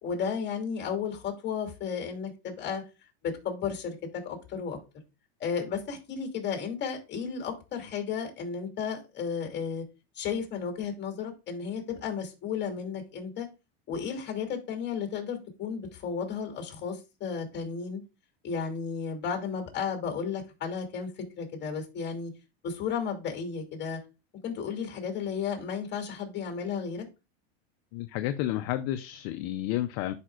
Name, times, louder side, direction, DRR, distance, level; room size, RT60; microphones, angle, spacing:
voice 1, 0.0-2.8 3.2-3.9 4.2-4.8 5.4-9.8 10.1-13.5 13.9-18.0 18.4-22.3 22.6-24.0 24.4-27.0, left 6 dB, 35° left, 2.6 m, -33 dB
voice 2, 27.9-30.1, left 13 dB, 55° left, 0.6 m, -31 dB
11.0 x 5.1 x 2.4 m
supercardioid pair, 125°, 31 cm